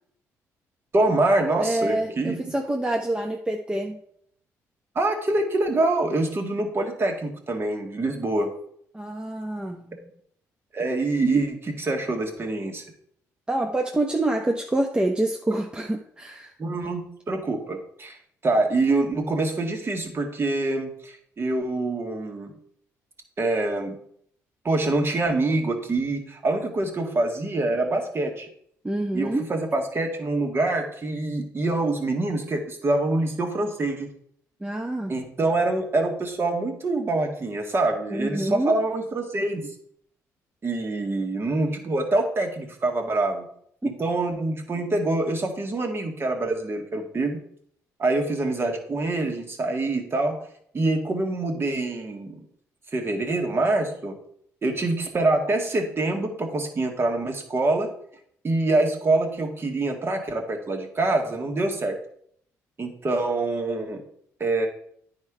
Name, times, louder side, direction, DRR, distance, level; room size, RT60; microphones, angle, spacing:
voice 1, 0.9-2.4 5.0-8.5 10.7-12.8 16.6-18.2 18.4-22.5 23.4-24.0 24.6-28.5 29.1-34.1 35.1-39.7 40.6-43.5 44.0-47.4 48.0-50.4 50.7-52.4 52.9-54.2 54.6-57.9 58.4-62.0 62.8-64.0 64.4-64.7, right 2 dB, 40° right, 3 dB, 1.8 m, -25 dB
voice 2, 1.6-4.0 8.9-10.1 13.5-16.5 28.8-29.4 34.6-35.1 38.1-38.8 43.8-43.9, right 1 dB, 15° right, 2 dB, 0.8 m, -27 dB
9.6 x 4.4 x 4.9 m, 0.67 s
supercardioid pair, 70°, 6 cm